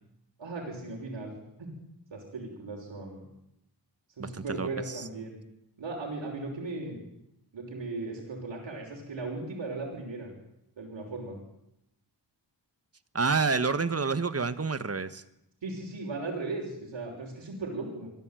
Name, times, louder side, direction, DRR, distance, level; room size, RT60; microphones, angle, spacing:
voice 1, 0.4-1.3 1.6-1.7 2.1-3.3 4.2-5.4 5.8-7.0 7.5-10.3 10.8-11.4 15.6-18.1, right 3 dB, 90° right, -2 dB, 6.1 m, -37 dB
voice 2, 4.2-5.0 13.1-15.2, right 4 dB, 35° right, 13 dB, 1.5 m, -29 dB
25.0 x 16.5 x 9.2 m, 0.82 s
wide cardioid pair, 125°, 44 cm